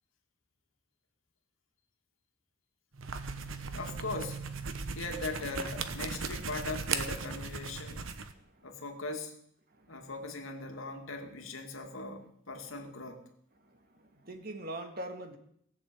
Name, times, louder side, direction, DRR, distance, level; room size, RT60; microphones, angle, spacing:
sound 1, 2.9-8.3, right 5 dB, 80° right, 1.2 m, -37 dB
voice 1, 3.7-4.4 5.0-8.1 8.6-9.3 9.9-13.2, left 3 dB, 80° left, 3 dB, 2.4 m, -40 dB
voice 2, 8.3-8.8 9.7-10.1 13.6-15.4, right 1 dB, 45° right, 6 dB, 1.8 m, -44 dB
18.5 x 6.9 x 8.7 m, 0.70 s
head